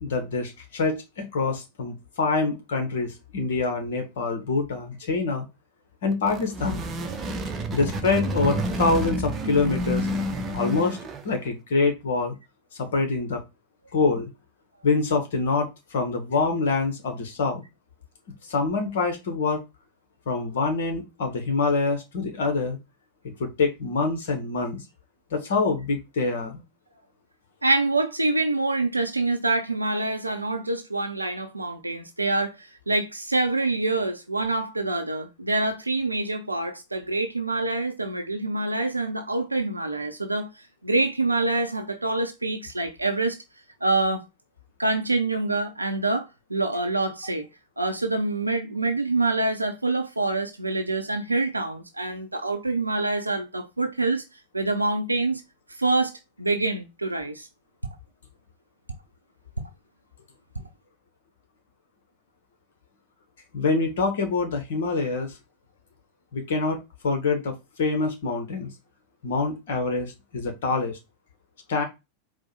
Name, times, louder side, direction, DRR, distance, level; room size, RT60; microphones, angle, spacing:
voice 1, 0.0-5.5 6.0-6.8 7.7-10.1 10.5-11.0 11.2-12.3 12.7-13.4 13.9-14.3 14.8-17.6 18.4-19.6 20.3-22.8 23.4-24.8 25.3-26.6 63.5-65.4 66.3-68.7 69.2-71.0 71.7-71.8, left 4 dB, 55° left, 0.9 m, -25 dB
sound 1, 6.1-11.4, right 1 dB, 25° right, 0.7 m, -29 dB
voice 2, 27.6-43.4 43.8-44.2 44.8-47.5 47.8-54.2 54.5-55.4 55.8-56.1 56.4-57.5, right 2 dB, 85° right, 0.5 m, -26 dB
4.5 x 2.1 x 4.3 m
figure-of-eight pair, 90°, 0 cm